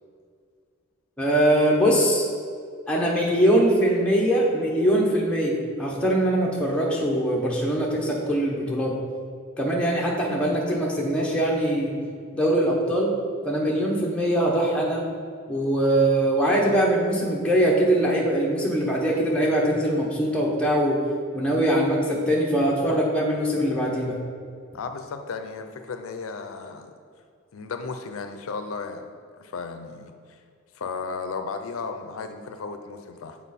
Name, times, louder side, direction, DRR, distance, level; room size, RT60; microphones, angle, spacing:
voice 1, 1.2-2.3 2.9-8.9 9.6-11.9 12.3-13.1 13.4-15.0 15.5-21.0 21.3-24.2, right 1 dB, 5° left, -4 dB, 0.9 m, -22 dB
voice 2, 24.7-26.9 27.5-29.1 29.4-30.4 30.7-33.4, left 4 dB, 80° left, 7 dB, 0.4 m, -34 dB
7.2 x 4.2 x 4.2 m, 2.2 s
head